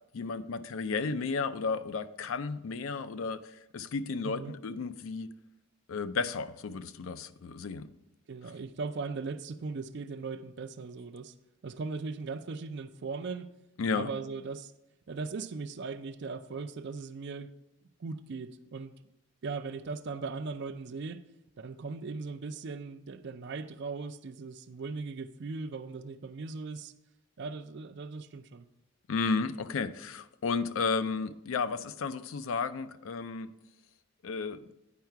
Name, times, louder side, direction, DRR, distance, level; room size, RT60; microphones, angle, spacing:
voice 1, 0.1-5.3 5.9-7.9 13.8-14.1 29.1-33.5 34.2-34.6, left 4 dB, 80° left, 0.4 m, -33 dB
voice 2, 4.2-4.5 8.3-11.3 11.6-13.5 13.9-14.7 15.1-17.5 18.0-18.9 19.4-21.2 21.6-26.9 27.4-28.7, right 4 dB, 60° right, 0.4 m, -38 dB
9.4 x 4.7 x 4.5 m
head